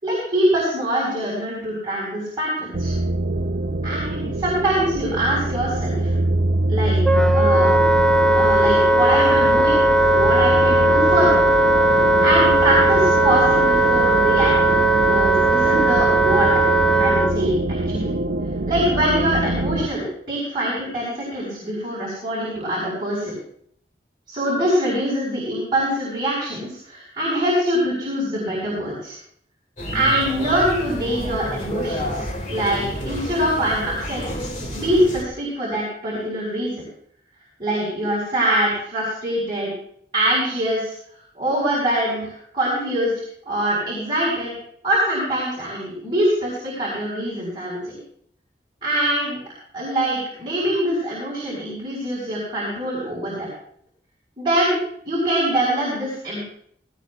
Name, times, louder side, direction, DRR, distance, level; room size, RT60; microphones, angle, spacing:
voice 1, 0.0-2.9 3.8-6.2 6.7-7.0 7.3-7.7 8.2-11.4 12.2-14.7 15.0-16.5 17.0-18.1 18.7-23.3 24.3-29.2 29.9-34.2 34.7-36.8 37.6-39.7 40.1-40.9 41.3-43.1 43.4-44.5 44.8-47.8 48.8-49.4 49.7-53.5 54.4-54.8 55.0-56.5, right 1 dB, 25° right, -5 dB, 4.7 m, -23 dB
sound 1, 2.7-19.9, right 2 dB, 65° right, 0.6 m, -24 dB
Wind instrument woodwind instrument, 7.0-17.3, right 1 dB, 5° left, 0.7 m, -17 dB
sound 2, 29.8-35.2, equal, 45° left, 2.1 m, -30 dB
18.0 x 17.0 x 2.3 m, 0.65 s
head